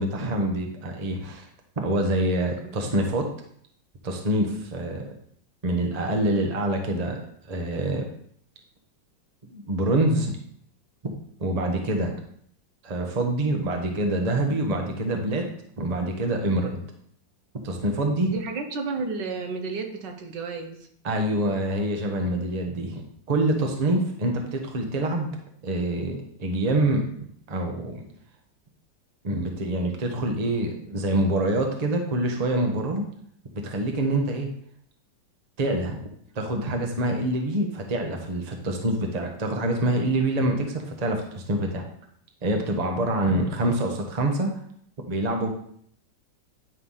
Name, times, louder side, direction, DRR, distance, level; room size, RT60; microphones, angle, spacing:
voice 1, 0.0-1.5 1.8-3.3 4.0-5.0 5.6-7.2 7.5-8.0 9.5-10.3 11.0-11.1 11.4-12.1 12.8-15.4 15.8-16.8 17.6-18.3 21.0-25.3 25.6-27.1 27.5-28.0 29.2-33.0 33.6-34.5 35.6-36.0 36.3-41.9 42.4-44.5 45.1-45.5, right 1 dB, 25° right, 2 dB, 0.9 m, -26 dB
voice 2, 18.2-20.8, right 4 dB, 70° right, 4 dB, 1.5 m, -32 dB
9.9 x 3.4 x 5.6 m, 0.65 s
omnidirectional pair, 2.0 m